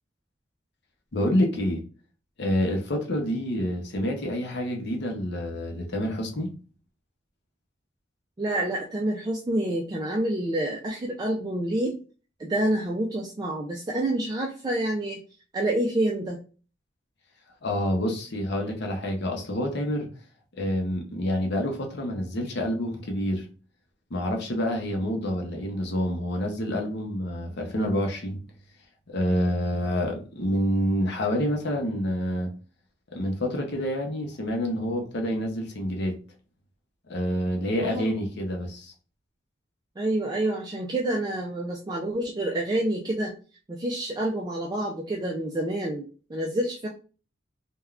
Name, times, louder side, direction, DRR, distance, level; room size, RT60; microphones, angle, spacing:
voice 1, 1.1-1.8 2.4-6.5 17.6-20.1 20.5-23.5 24.1-28.4 29.1-32.5 33.1-36.1 37.1-38.9, equal, 60° left, 0.7 m, -27 dB
voice 2, 8.4-11.9 12.4-15.2 15.5-16.4 37.8-38.2 40.0-43.3 43.7-46.0 46.3-46.9, right 1 dB, 20° right, 0.3 m, -28 dB
3.4 x 2.2 x 2.3 m
head